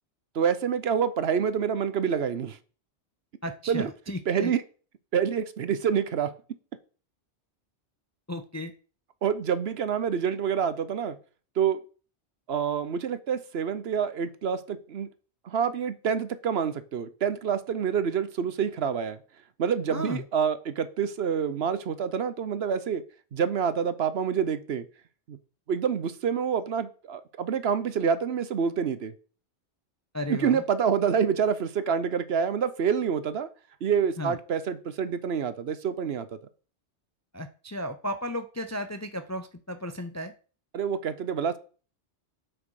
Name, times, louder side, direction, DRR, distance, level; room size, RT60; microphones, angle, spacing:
voice 1, 0.3-2.6 3.7-3.9 4.3-4.6 5.1-6.3 9.2-11.2 11.6-11.8 12.5-15.1 15.4-19.2 19.6-23.0 23.3-24.9 25.3-25.4 25.7-29.1 30.3-33.5 33.8-36.3 40.7-41.6, right 7 dB, 65° right, 14 dB, 1.0 m, -27 dB
voice 2, 3.4-4.5 8.3-8.7 19.9-20.2 30.1-30.6 34.2-34.4 37.3-40.3, left 1 dB, 25° left, 9 dB, 0.4 m, -34 dB
8.9 x 6.4 x 4.8 m, 0.39 s
omnidirectional pair, 1.2 m